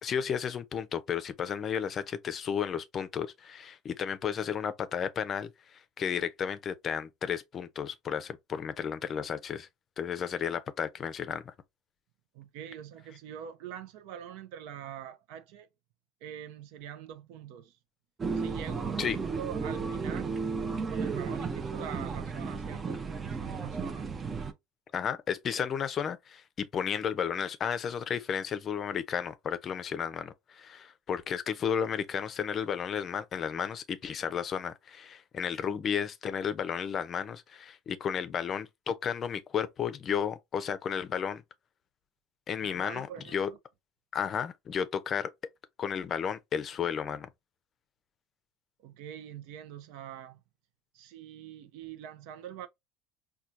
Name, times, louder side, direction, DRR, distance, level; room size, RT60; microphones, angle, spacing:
voice 1, 0.0-9.7 10.0-11.5 19.0-19.2 24.9-41.4 42.5-43.1 43.3-43.5 44.1-45.3 45.8-47.3, left 7 dB, 40° left, 0.5 m, -33 dB
voice 2, 12.3-15.7 16.2-17.8 18.4-20.4 20.9-24.1 42.6-43.6 48.8-50.4 50.9-52.7, right 10 dB, 75° right, 0.5 m, -44 dB
sound 1, 18.2-24.5, right 5 dB, 30° right, 0.6 m, -34 dB
4.3 x 2.3 x 2.5 m
supercardioid pair, 90°, 0 cm